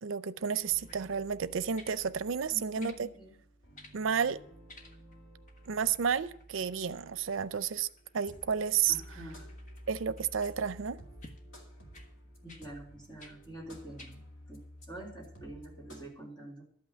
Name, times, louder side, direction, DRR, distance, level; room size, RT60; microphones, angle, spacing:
voice 1, 0.0-3.1 3.9-4.4 5.7-7.9 8.1-9.0 9.9-11.0, right 7 dB, 90° right, 0.5 m, -31 dB
sound 1, 0.6-16.1, equal, 75° left, 2.8 m, -53 dB
sound 2, 0.8-1.1 1.8-2.0 2.8-3.0 3.7-4.0 4.7-5.2 5.5-10.6 11.2-11.4 11.9-12.1 12.5-12.7 13.2-13.4 14.0-14.2 14.8-14.9, left 1 dB, 40° left, 1.3 m, -55 dB
voice 2, 2.5-3.4 8.9-9.5 12.4-14.2 14.5-14.6 14.9-16.6, right 1 dB, 25° left, 3.8 m, -46 dB
12.5 x 5.9 x 8.8 m
head